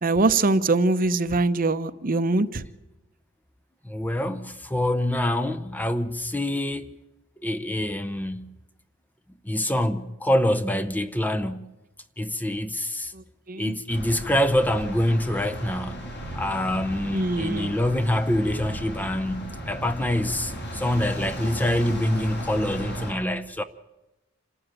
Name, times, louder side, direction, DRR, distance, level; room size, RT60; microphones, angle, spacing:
voice 1, 0.0-2.6 13.5-13.7 17.1-17.7, right 2 dB, 40° right, 0.8 m, -23 dB
voice 2, 3.8-6.9 7.4-8.5 9.4-11.7 12.2-13.1 13.5-16.0 16.3-23.6, left 1 dB, 10° left, 0.6 m, -25 dB
sound 1, 13.9-23.1, equal, 55° left, 6.6 m, -35 dB
27.0 x 13.0 x 9.0 m
head